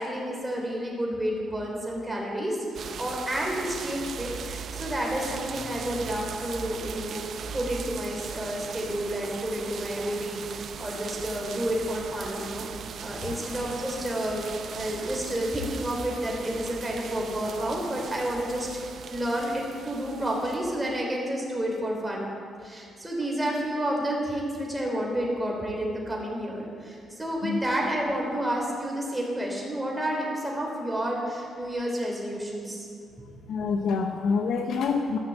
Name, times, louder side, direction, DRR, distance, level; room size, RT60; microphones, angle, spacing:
voice 1, 0.0-12.7 13.0-22.3 22.6-32.9 33.3-33.4, right 1 dB, 10° right, -2 dB, 3.3 m, -30 dB
sound 1, 2.7-20.8, right 7 dB, 60° right, 0.5 m, -39 dB
voice 2, 33.5-35.2, left 5 dB, 70° left, 4 dB, 0.7 m, -26 dB
13.5 x 5.9 x 7.7 m, 2.4 s
cardioid pair, 90°, 0 cm